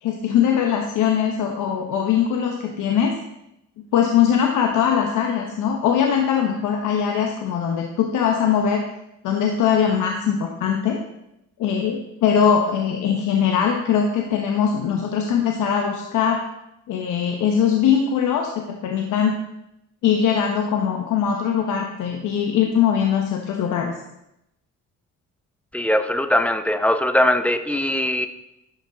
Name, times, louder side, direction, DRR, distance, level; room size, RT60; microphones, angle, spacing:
voice 1, 0.0-3.1 3.9-8.8 9.2-11.0 11.6-16.4 16.9-19.3 20.0-23.9, left 8 dB, 85° left, 2 dB, 1.0 m, -21 dB
voice 2, 25.7-28.3, left 1 dB, 5° left, 9 dB, 0.6 m, -20 dB
11.0 x 5.5 x 3.9 m, 0.85 s
cardioid pair, 90°, 30 cm